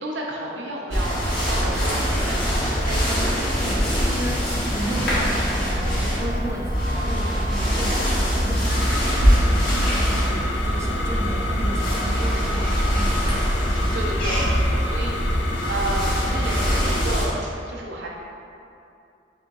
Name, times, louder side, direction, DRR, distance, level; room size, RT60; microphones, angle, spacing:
voice 1, 0.0-3.6 13.6-18.1, right 1 dB, 80° right, -3 dB, 0.6 m, -32 dB
sound 1, 0.9-17.2, equal, 60° left, 1.3 m, -23 dB
voice 2, 3.6-13.3, right 1 dB, 15° right, -4 dB, 0.4 m, -33 dB
Wind instrument woodwind instrument, 5.5-9.4, left 1 dB, 45° right, 0.7 m, -39 dB
sound 2, 8.7-17.1, left 2 dB, 80° left, 0.4 m, -31 dB
4.9 x 3.8 x 2.3 m, 2.6 s
head